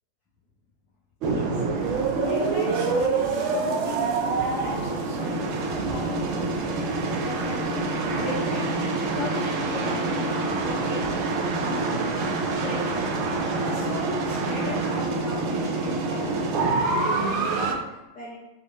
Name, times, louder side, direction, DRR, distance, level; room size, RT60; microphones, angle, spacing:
voice 1, 1.2-5.5 5.8-6.8 7.2-8.7 9.1-10.5 10.8-11.3 11.6-12.2 12.6-12.8 13.6-18.4, left 2 dB, 30° left, -9 dB, 1.0 m, -37 dB
sound 1, 1.2-17.7, right 3 dB, 40° right, 0.4 m, -26 dB
4.6 x 2.5 x 2.5 m, 1.0 s
figure-of-eight pair, 90°, 0 cm